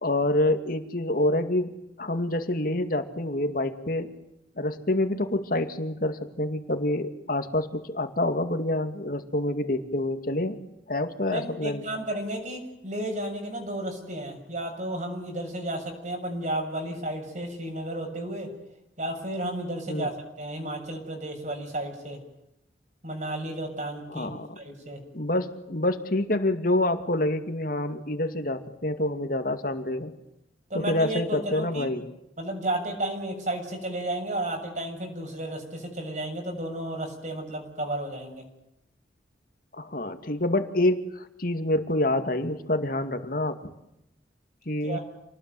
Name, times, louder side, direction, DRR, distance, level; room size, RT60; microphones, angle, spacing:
voice 1, 0.0-4.1 4.6-10.6 10.9-11.8 19.9-20.1 24.1-24.5 25.1-30.1 30.7-32.1 39.8-43.6 44.7-45.0, left 1 dB, 50° left, 7 dB, 2.5 m, -27 dB
voice 2, 11.3-18.5 19.0-22.2 23.0-25.0 30.7-31.9 32.4-38.4 44.8-45.0, right 1 dB, 40° right, 3 dB, 7.1 m, -33 dB
28.5 x 19.5 x 9.4 m, 0.84 s
head